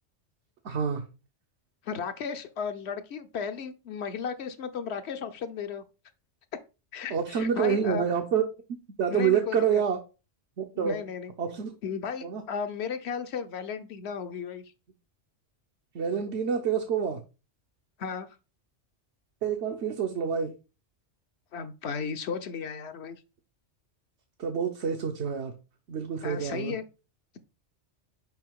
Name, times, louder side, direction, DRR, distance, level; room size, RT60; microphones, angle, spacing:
voice 1, 0.6-1.0 7.1-8.4 9.0-10.0 10.6-11.0 11.4-11.7 12.2-12.4 15.9-17.2 19.4-20.5 24.4-25.5 25.9-26.7, right 7 dB, 75° right, 1.1 m, -27 dB
voice 2, 1.8-5.8 6.9-8.1 9.1-9.6 10.7-11.3 11.8-14.6 18.0-18.3 21.5-23.2 26.2-26.8, left 6 dB, 70° left, 1.0 m, -35 dB
6.1 x 5.0 x 3.6 m
omnidirectional pair, 1.2 m